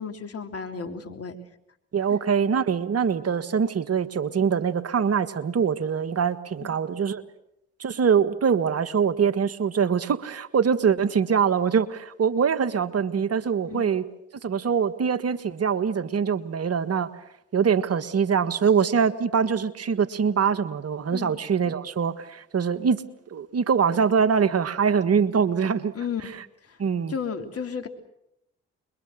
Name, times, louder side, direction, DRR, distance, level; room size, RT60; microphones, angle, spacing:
voice 1, 0.0-1.4 2.1-2.2 6.6-6.7 13.7-13.9 21.1-21.4 25.9-26.2 26.7-26.8 27.1-27.9, left 6 dB, 50° left, 5 dB, 3.4 m, -33 dB
voice 2, 1.9-7.2 7.8-14.0 14.4-17.1 17.5-23.0 23.3-25.9 26.2-26.3 26.8-27.1, right 6 dB, 55° right, 12 dB, 1.7 m, -23 dB
28.0 x 22.5 x 6.5 m, 0.80 s
hypercardioid pair, 45°, 30 cm